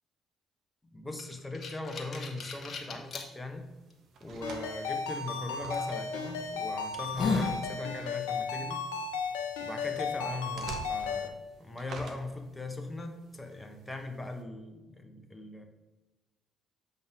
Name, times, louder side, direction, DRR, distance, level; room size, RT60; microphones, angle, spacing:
voice 1, 0.8-3.7 4.2-8.9 9.6-15.6, left 2 dB, 15° left, 5 dB, 1.1 m, -39 dB
sound 1, 1.2-3.2 3.9-4.0 5.7-5.9 6.5-6.6 6.9-7.6, left 4 dB, 40° left, 1.2 m, -33 dB
sound 2, 2.5-14.4, right 3 dB, 55° right, 0.9 m, -51 dB
Ringtone, 4.4-11.3, left 5 dB, 75° left, 0.6 m, -35 dB
7.2 x 5.4 x 3.7 m, 1.1 s
figure-of-eight pair, 50°, 0 cm